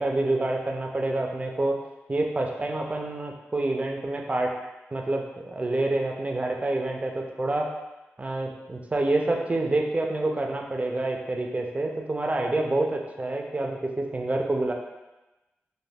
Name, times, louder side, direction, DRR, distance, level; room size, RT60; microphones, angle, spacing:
voice 1, 0.0-1.8 2.1-4.5 4.9-7.7 8.2-14.7, right 2 dB, 30° right, 1 dB, 0.4 m, -27 dB
2.2 x 2.2 x 3.3 m, 1.0 s
cardioid pair, 55°, 5 cm